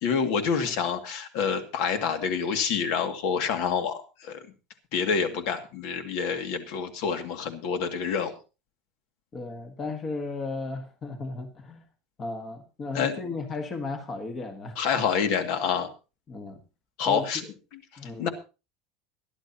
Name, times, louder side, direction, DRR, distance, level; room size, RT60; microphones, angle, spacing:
voice 1, 0.0-4.4 4.9-8.3 12.9-13.2 14.8-15.9 17.0-17.4 18.2-18.3, left 6 dB, 55° left, 2.2 m, -27 dB
voice 2, 9.3-11.8 12.2-14.8 16.3-16.6 17.0-17.5 18.0-18.3, left 3 dB, 20° left, 1.5 m, -35 dB
21.5 x 12.0 x 2.9 m
cardioid pair, 175°, 0 cm